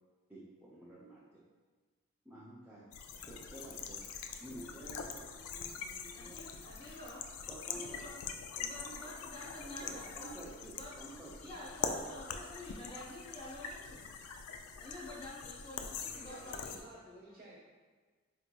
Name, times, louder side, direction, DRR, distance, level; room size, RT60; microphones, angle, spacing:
voice 1, 0.3-1.4 2.2-2.8 3.3-4.0 4.4-6.4 7.5-8.2 8.5-9.4 9.6-11.5, right 1 dB, 10° right, -8 dB, 0.4 m, -51 dB
sound 1, 2.9-16.8, left 6 dB, 85° left, 0.3 m, -44 dB
voice 2, 6.1-7.3 7.6-8.1 8.6-10.3 10.7-10.9 11.4-14.0 14.8-16.8, left 1 dB, 25° left, -7 dB, 0.7 m, -49 dB
voice 3, 16.1-17.6, right 1 dB, 40° right, -6 dB, 1.1 m, -53 dB
4.5 x 2.8 x 2.2 m, 1.4 s
head